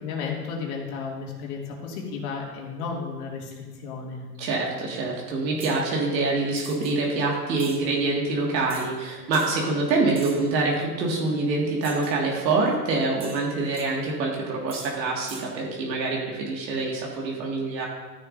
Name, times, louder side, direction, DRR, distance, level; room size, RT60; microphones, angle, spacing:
voice 1, 0.0-4.2, left 5 dB, 60° left, -1 dB, 2.4 m, -33 dB
voice 2, 4.4-17.9, right 3 dB, 90° right, -2 dB, 2.1 m, -25 dB
sound 1, 5.6-5.8 6.6-6.9 7.6-7.8 8.7-8.9 9.3-9.6 10.2-10.5 11.8-12.2 13.2-13.9 14.7-14.9 15.3-15.5, right 5 dB, 10° right, 0.5 m, -42 dB
13.5 x 6.8 x 2.6 m, 1.3 s
supercardioid pair, 135°, 50 cm